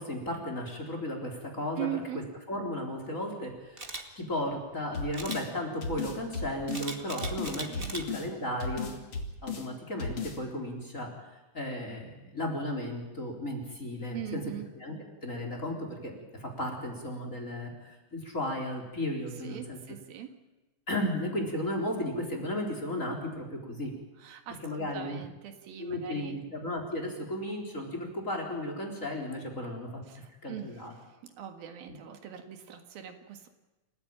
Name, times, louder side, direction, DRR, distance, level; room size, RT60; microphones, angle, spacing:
voice 1, 0.0-1.9 2.5-3.9 4.2-8.9 9.4-11.1 11.5-14.4 14.8-14.9 15.2-19.8 20.9-23.9 24.6-25.2 25.8-30.0 30.4-30.9, left 1 dB, 20° left, 3 dB, 4.0 m, -34 dB
voice 2, 1.8-2.3 7.1-7.9 14.1-14.7 19.4-20.4 24.2-26.4 30.0-33.5, right 10 dB, 75° right, 7 dB, 3.5 m, -41 dB
Camera, 3.8-4.0 5.1-5.4 6.7-8.0 8.5-8.8, right 2 dB, 25° right, 1.2 m, -39 dB
sound 1, 4.9-5.5 5.8-6.9 7.2-8.3 8.6-9.7 10.0-10.4, left 4 dB, 40° left, 3.1 m, -35 dB
28.5 x 15.0 x 8.9 m, 1.1 s
omnidirectional pair, 4.3 m